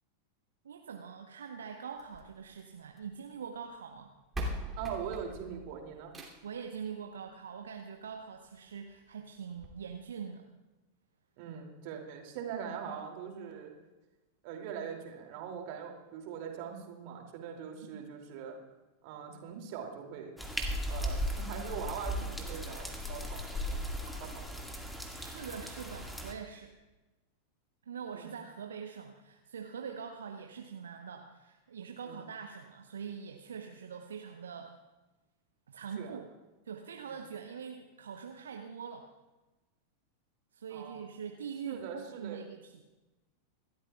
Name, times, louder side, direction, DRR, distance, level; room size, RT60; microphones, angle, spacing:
voice 1, 0.6-4.1 6.4-10.4 17.9-18.1 25.1-26.7 27.9-34.7 35.7-36.3 36.6-39.1 40.5-42.8, right 6 dB, 65° right, 4 dB, 1.0 m, -43 dB
sound 1, 2.0-3.2 4.0-4.1 4.3-6.6 8.0-8.1 8.6-8.7 8.9-9.0 9.6-9.7, equal, 15° right, 2.8 m, -41 dB
voice 2, 4.8-6.1 11.4-13.7 14.4-18.6 19.0-20.4 20.9-24.9 28.1-28.3 32.0-32.3 36.0-36.2 37.1-37.2 40.7-41.0 41.6-42.4, right 7 dB, 45° right, 2 dB, 2.6 m, -42 dB
sound 2, 20.4-26.3, equal, 5° left, 1.9 m, -37 dB
26.5 x 12.5 x 2.4 m, 1.1 s
figure-of-eight pair, 90°, 0 cm